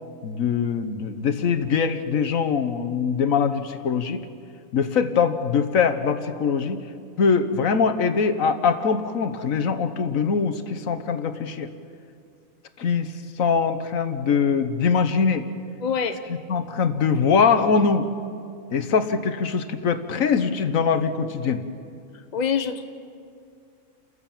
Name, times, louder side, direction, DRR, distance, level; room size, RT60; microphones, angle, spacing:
voice 1, 0.2-4.2 4.7-6.8 7.2-11.7 12.8-13.1 13.4-15.5 16.5-18.1 18.7-21.6, left 6 dB, 85° left, 10 dB, 1.5 m, -22 dB
voice 2, 15.8-16.2 22.3-22.8, left 6 dB, 35° left, 8 dB, 1.1 m, -24 dB
30.0 x 14.5 x 7.4 m, 2.4 s
omnidirectional pair, 1.4 m